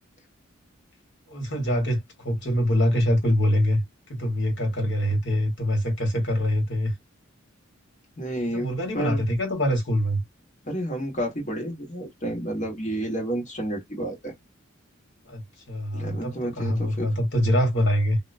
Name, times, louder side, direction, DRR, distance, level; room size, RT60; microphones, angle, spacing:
voice 1, 1.3-3.8 4.1-6.9 8.5-10.2 15.2-15.4 15.7-18.2, equal, 60° left, 1.6 m, -24 dB
voice 2, 8.2-9.2 10.6-14.3 15.9-17.1, right 1 dB, 35° left, 1.4 m, -30 dB
2.8 x 2.2 x 2.5 m
head